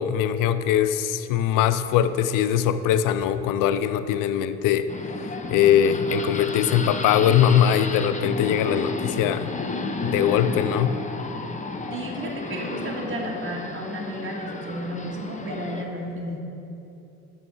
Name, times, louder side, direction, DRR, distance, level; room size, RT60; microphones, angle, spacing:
voice 1, 0.0-4.9 5.2-9.5 10.0-10.9, left 9 dB, 70° left, 12 dB, 0.5 m, -21 dB
sound 1, 4.9-15.9, left 3 dB, 20° left, 0.8 m, -32 dB
voice 2, 11.9-16.4, right 1 dB, 35° right, -2 dB, 1.7 m, -32 dB
6.5 x 6.3 x 6.8 m, 2.8 s
supercardioid pair, 65°, 34 cm